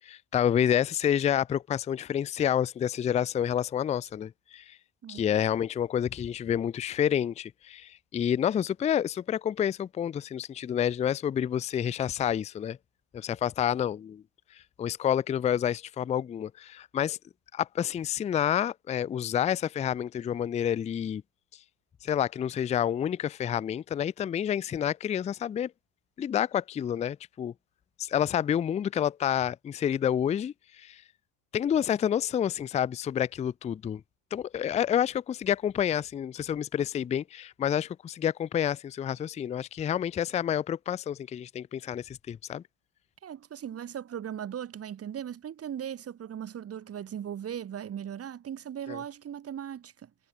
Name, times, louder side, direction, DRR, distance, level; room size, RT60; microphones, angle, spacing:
voice 1, 0.0-4.8 5.1-12.8 13.1-14.2 14.5-17.2 17.5-21.2 22.0-25.7 26.2-27.5 28.0-31.0 31.5-34.0 34.3-42.6 48.9-49.0, left 9 dB, 15° left, 0.4 m, -29 dB
voice 2, 43.2-50.1, right 9 dB, 35° right, 2.6 m, -38 dB
supercardioid pair, 105°, 41 cm